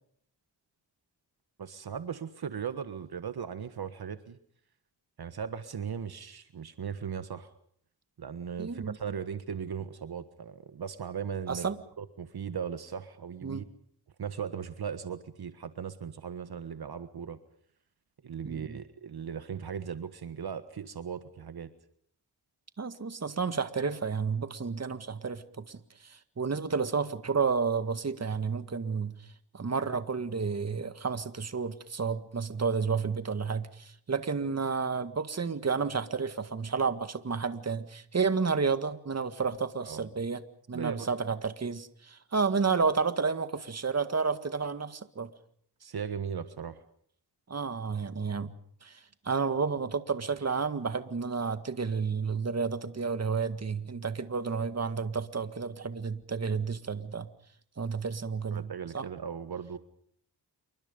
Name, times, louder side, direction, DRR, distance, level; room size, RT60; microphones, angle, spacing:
voice 1, 1.6-4.4 5.2-7.5 8.2-11.7 12.0-13.6 14.2-17.4 18.2-21.7 39.8-40.1 40.7-41.1 45.8-46.8 58.5-59.8, right 7 dB, 65° right, 11 dB, 1.5 m, -38 dB
voice 2, 8.6-9.0 11.5-11.8 13.4-13.7 18.4-18.8 22.8-29.1 29.5-40.4 40.7-45.3 47.5-48.5 48.8-57.3 57.8-58.7 58.9-59.1, right 5 dB, 40° right, 11 dB, 1.9 m, -31 dB
28.0 x 24.0 x 5.3 m, 0.65 s
wide cardioid pair, 85°, 41 cm